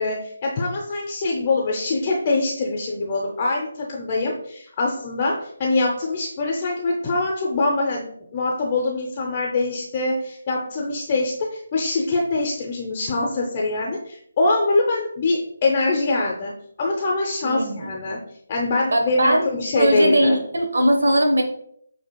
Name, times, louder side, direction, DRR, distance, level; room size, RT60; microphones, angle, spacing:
voice 1, 0.0-8.1 8.3-16.5 16.8-18.2 18.5-20.4, left 2 dB, 30° left, -1 dB, 0.6 m, -23 dB
voice 2, 17.4-17.9 18.9-19.5 19.8-21.4, right 1 dB, 75° right, 3 dB, 0.9 m, -19 dB
7.8 x 2.8 x 2.2 m, 0.67 s
figure-of-eight pair, 155°, 0 cm